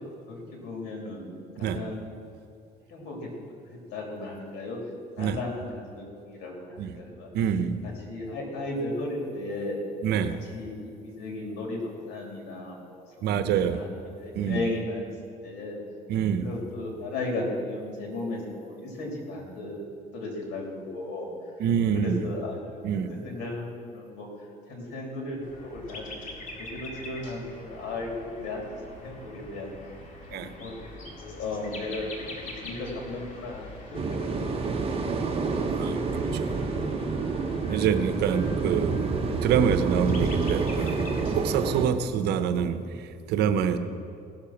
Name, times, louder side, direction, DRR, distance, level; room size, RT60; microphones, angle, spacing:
voice 1, 0.3-1.3 1.6-2.0 2.9-3.3 3.7-4.8 5.2-7.3 8.1-9.8 10.5-13.0 13.4-15.0 15.4-15.8 16.4-19.8 20.1-21.3 21.9-22.7 23.1-24.3 24.7-28.6 29.0-29.7 30.3-32.3 32.6-35.4 37.5-37.8, left 2 dB, 85° left, 0 dB, 3.0 m, -35 dB
voice 2, 7.3-7.9 10.0-10.4 13.2-13.8 14.3-14.6 16.1-16.5 21.6-22.3 22.8-23.2 30.3-30.5 35.7-36.0 36.3-36.5 37.7-39.0 39.4-41.0 41.3-43.8, right 8 dB, 75° right, 10 dB, 0.8 m, -26 dB
sound 1, 25.4-41.5, left 1 dB, 50° left, 2.1 m, -43 dB
sound 2, 33.9-41.9, right 4 dB, 35° right, 1.0 m, -28 dB
16.0 x 6.8 x 5.8 m, 2.4 s
cardioid pair, 110°, 17 cm